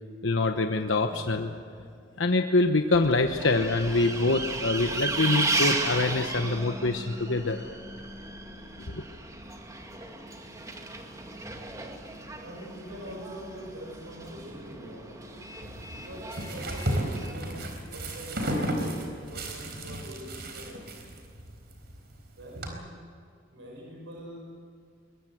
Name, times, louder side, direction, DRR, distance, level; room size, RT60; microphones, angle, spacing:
voice 1, 0.2-1.6 2.2-7.6 8.9-9.0, left 2 dB, 75° left, 5 dB, 1.1 m, -25 dB
Bus, 2.9-17.3, right 2 dB, 15° right, 2.0 m, -35 dB
voice 2, 12.4-15.2 15.9-20.9 22.4-22.9 23.5-24.4, equal, 80° right, -1 dB, 5.4 m, -44 dB
sound 1, 15.6-22.7, right 1 dB, 55° right, 4.2 m, -34 dB
22.5 x 21.5 x 7.9 m, 2.3 s
head